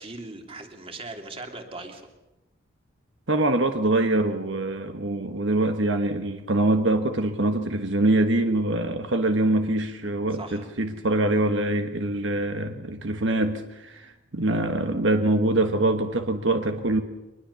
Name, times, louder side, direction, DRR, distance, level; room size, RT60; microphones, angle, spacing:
voice 1, 0.0-2.1 10.4-10.7, right 2 dB, 30° right, 4 dB, 2.9 m, -39 dB
voice 2, 3.3-17.0, right 2 dB, 65° right, 6 dB, 1.4 m, -24 dB
24.0 x 21.0 x 7.0 m, 0.98 s
head